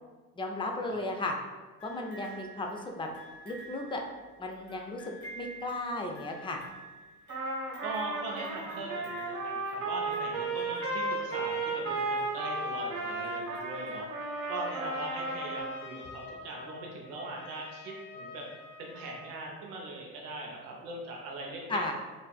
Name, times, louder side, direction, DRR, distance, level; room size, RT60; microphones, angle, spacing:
voice 1, 0.4-1.4 1.8-3.1 3.4-4.0 4.4-6.6 21.7-21.9, left 2 dB, 10° left, 2 dB, 0.4 m, -35 dB
sound 1, 1.8-14.6 15.6-15.7, right 1 dB, 60° left, 1.5 m, -50 dB
Trumpet, 7.3-15.8, right 2 dB, 45° right, 0.9 m, -34 dB
voice 2, 7.8-21.9, right 2 dB, 75° right, -1 dB, 0.7 m, -41 dB
Trumpet 2, 13.7-19.5, left 3 dB, 80° left, 0.7 m, -47 dB
4.5 x 2.4 x 2.3 m, 1.3 s
hypercardioid pair, 50°, 46 cm